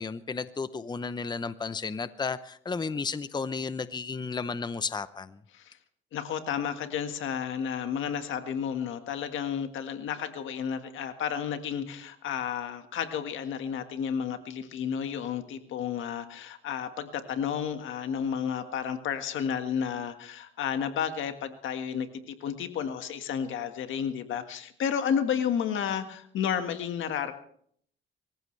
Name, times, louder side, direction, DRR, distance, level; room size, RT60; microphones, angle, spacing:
voice 1, 0.0-5.4, left 4 dB, 20° left, 13 dB, 0.7 m, -33 dB
voice 2, 6.1-27.3, left 8 dB, 80° left, 8 dB, 1.7 m, -32 dB
24.5 x 15.0 x 3.3 m, 0.63 s
cardioid pair, 90°, 20 cm